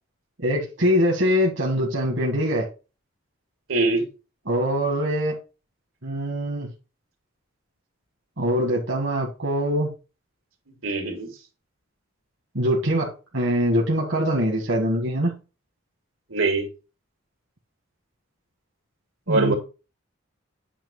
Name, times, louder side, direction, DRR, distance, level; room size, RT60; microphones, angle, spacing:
voice 1, 0.4-2.7 4.5-5.4 6.0-6.7 8.4-9.9 12.6-15.4 19.3-19.5, equal, 65° right, 1.7 m, -23 dB
voice 2, 3.7-4.1 10.8-11.3 16.3-16.7 19.3-19.6, right 3 dB, 90° right, 2.7 m, -22 dB
8.7 x 3.0 x 5.4 m
head